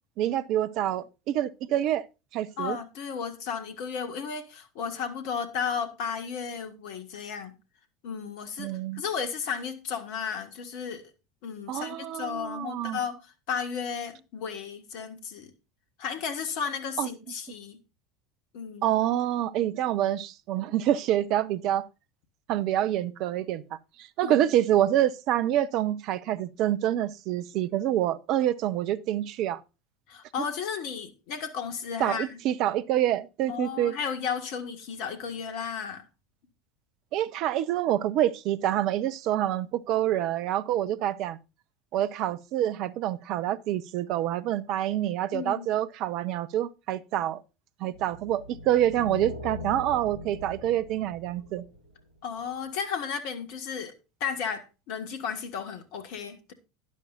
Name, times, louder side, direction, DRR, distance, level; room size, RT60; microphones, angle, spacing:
voice 1, 0.2-2.1 2.3-2.8 8.6-9.0 11.7-13.0 17.0-17.1 18.8-21.9 22.5-29.6 32.0-34.0 37.1-41.4 41.9-47.4 47.8-51.7, right 12 dB, 50° right, 0.7 m, -27 dB
voice 2, 2.6-7.5 8.0-11.0 11.4-13.2 13.5-15.5 16.0-17.8 18.5-18.8 24.2-24.5 30.1-32.4 33.5-36.0 45.3-45.7 52.2-53.9 54.2-56.5, left 6 dB, 55° left, 1.7 m, -34 dB
sound 1, 47.9-52.4, left 1 dB, 85° left, 1.9 m, -42 dB
11.5 x 10.5 x 2.5 m
figure-of-eight pair, 70°, 0 cm